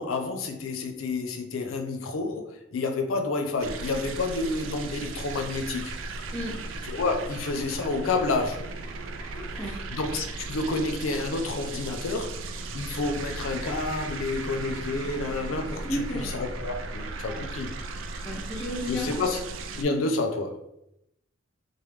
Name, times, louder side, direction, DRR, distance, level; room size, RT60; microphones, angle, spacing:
voice 1, 0.0-5.9 6.9-8.6 9.6-12.4 12.7-17.7 18.9-19.4 19.7-20.6, left 3 dB, 85° left, 6 dB, 0.5 m, -29 dB
sound 1, 3.6-19.8, right 3 dB, 70° right, 0.3 m, -36 dB
voice 2, 9.4-9.7 15.8-16.3 17.3-17.4 18.2-19.1, equal, 10° left, -6 dB, 0.4 m, -33 dB
3.1 x 2.1 x 3.2 m, 0.82 s
head